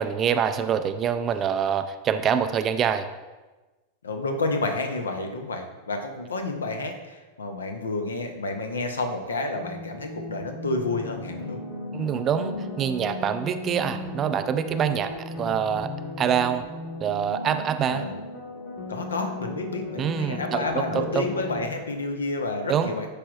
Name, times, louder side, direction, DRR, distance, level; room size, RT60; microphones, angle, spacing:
voice 1, 0.0-3.1 11.9-15.9 16.2-16.7 17.0-18.1 20.0-21.3 22.7-22.9, right 8 dB, 30° right, 10 dB, 0.4 m, -25 dB
voice 2, 4.0-11.6 17.9-18.1 18.9-23.1, left 2 dB, 70° left, 5 dB, 0.7 m, -30 dB
sound 1, 9.5-21.6, left 2 dB, 40° left, 1.7 m, -36 dB
9.9 x 4.9 x 2.5 m, 1.2 s
figure-of-eight pair, 90°, 0 cm